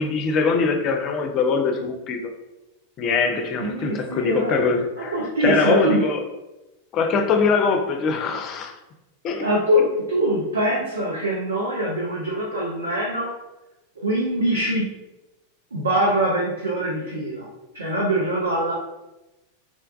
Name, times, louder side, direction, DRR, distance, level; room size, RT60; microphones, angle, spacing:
voice 1, 0.0-2.2 3.0-6.2 6.9-8.8 9.2-9.5, left 4 dB, 35° left, 5 dB, 0.4 m, -22 dB
voice 2, 3.6-4.6 5.0-6.1 9.4-13.3 14.0-14.9 15.7-17.5 17.7-18.7, right 1 dB, 75° right, -5 dB, 0.6 m, -23 dB
3.7 x 2.2 x 2.4 m, 0.99 s
figure-of-eight pair, 90°, 0 cm